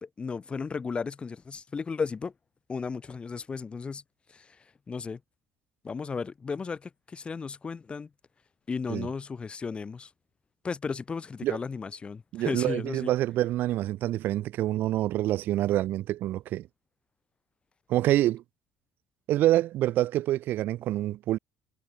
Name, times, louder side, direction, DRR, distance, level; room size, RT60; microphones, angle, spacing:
voice 1, 0.0-2.3 2.7-4.0 4.3-5.2 5.8-8.1 8.7-10.1 10.6-13.1, left 5 dB, 30° left, 1.3 m, -35 dB
voice 2, 12.3-16.6 17.9-18.4 19.3-21.4, right 14 dB, 65° right, 0.5 m, -26 dB
supercardioid pair, 85°, 4 cm